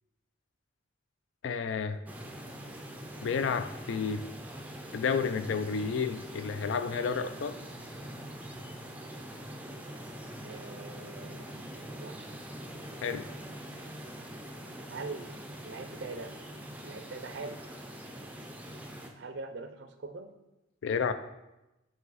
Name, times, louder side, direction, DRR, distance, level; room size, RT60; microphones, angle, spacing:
voice 1, 1.4-2.0 3.2-4.2 4.9-7.6 13.0-13.2 20.8-21.1, left 6 dB, 65° left, 11 dB, 0.3 m, -31 dB
sound 1, 2.1-19.1, equal, 10° right, 0.4 m, -44 dB
voice 2, 10.4-12.1 14.9-15.4 15.6-16.5 16.8-17.6 19.2-20.3, right 3 dB, 60° right, 8 dB, 0.5 m, -42 dB
5.0 x 4.8 x 4.1 m, 0.99 s
head